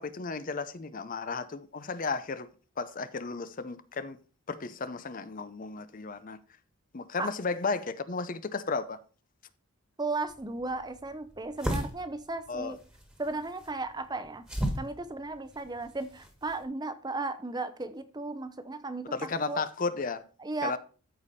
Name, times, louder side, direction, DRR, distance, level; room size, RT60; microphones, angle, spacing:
voice 1, 0.0-2.5 2.8-4.2 4.5-6.4 6.9-9.0 12.5-12.7 19.1-20.2 20.6-20.8, left 4 dB, 40° left, 0.6 m, -34 dB
voice 2, 10.0-12.8 13.2-14.4 14.8-19.1 19.5-19.6 20.4-20.8, right 3 dB, 20° right, 0.6 m, -35 dB
sound 1, 10.3-16.6, equal, 5° right, 1.6 m, -38 dB
13.5 x 5.0 x 4.2 m
head